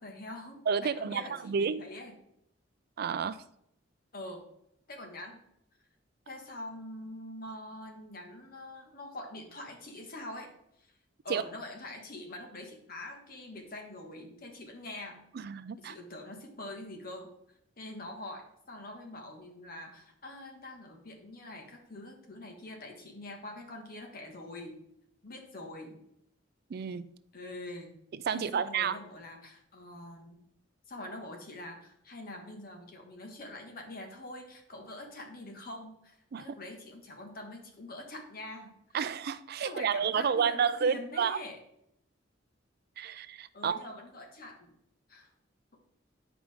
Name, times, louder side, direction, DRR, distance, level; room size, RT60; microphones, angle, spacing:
voice 1, 0.0-2.1 4.1-4.4 4.9-5.4 6.3-10.5 10.8-10.9 11.2-15.2 15.8-17.3 17.8-24.8 25.2-26.0 27.3-27.9 28.3-30.4 30.9-39.0 39.6-41.6 43.5-44.7 45.1-45.3, left 1 dB, 50° left, 2 dB, 1.5 m, -44 dB
voice 2, 0.7-1.8 3.0-3.4 11.3-11.4 15.3-15.9 26.7-27.1 28.1-29.0 36.3-36.5 38.9-41.4 43.0-43.8, right 6 dB, 55° right, 15 dB, 0.4 m, -30 dB
9.6 x 5.0 x 3.5 m, 0.77 s
head